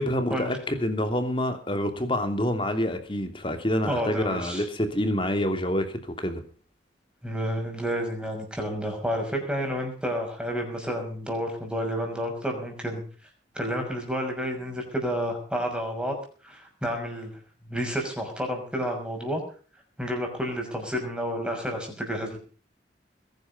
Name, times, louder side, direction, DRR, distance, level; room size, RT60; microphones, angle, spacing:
voice 1, 0.0-6.4, left 1 dB, 30° left, 7 dB, 3.0 m, -27 dB
voice 2, 3.8-4.7 7.2-13.0 13.5-16.2 16.4-17.3 17.6-19.4 20.0-22.4, equal, 5° right, 2 dB, 6.2 m, -30 dB
21.5 x 11.0 x 5.4 m, 0.42 s
head